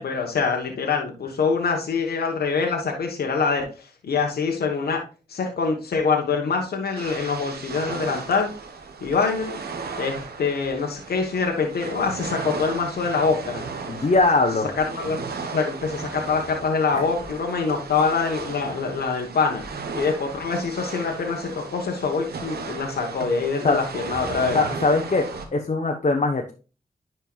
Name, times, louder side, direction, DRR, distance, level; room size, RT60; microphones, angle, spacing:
voice 1, 0.0-5.0 5.3-8.5 9.0-9.6 10.0-13.6 14.8-19.6 19.9-24.6, left 5 dB, 90° left, 2 dB, 1.2 m, -25 dB
sound 1, 7.0-25.5, right 4 dB, 90° right, 1.1 m, -35 dB
voice 2, 13.9-14.7 16.9-17.0 23.6-23.8 24.5-25.3 25.5-26.5, left 3 dB, 50° left, 3 dB, 1.0 m, -21 dB
10.5 x 4.6 x 2.4 m, 0.33 s
cardioid pair, 50°, 16 cm